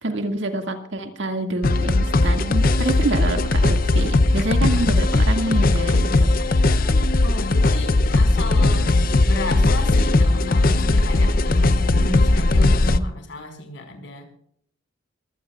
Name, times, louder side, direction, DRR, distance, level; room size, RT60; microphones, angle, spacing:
voice 1, 0.0-6.3, right 2 dB, 60° right, 5 dB, 2.1 m, -26 dB
sound 1, 1.6-13.0, left 2 dB, 45° left, 0.7 m, -18 dB
voice 2, 7.2-9.0 9.3-14.2, left 1 dB, 60° left, 5 dB, 5.2 m, -32 dB
24.0 x 16.5 x 2.5 m, 0.68 s
head